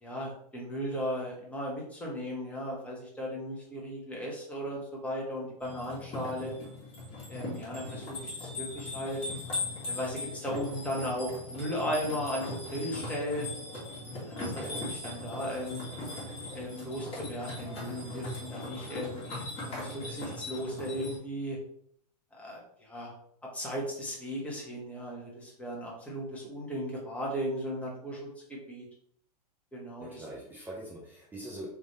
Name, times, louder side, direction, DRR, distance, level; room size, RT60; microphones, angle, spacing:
voice 1, 0.0-6.5 7.3-9.2 9.9-13.5 14.4-15.9 16.5-19.2 19.7-21.6 22.3-23.1 23.5-28.9 29.7-30.3, equal, 5° left, -3 dB, 1.4 m, -36 dB
sound 1, 5.6-21.2, left 2 dB, 25° left, 1.8 m, -39 dB
voice 2, 30.0-31.7, right 1 dB, 10° right, -4 dB, 0.6 m, -43 dB
3.6 x 3.1 x 4.1 m, 0.66 s
hypercardioid pair, 125°, 21 cm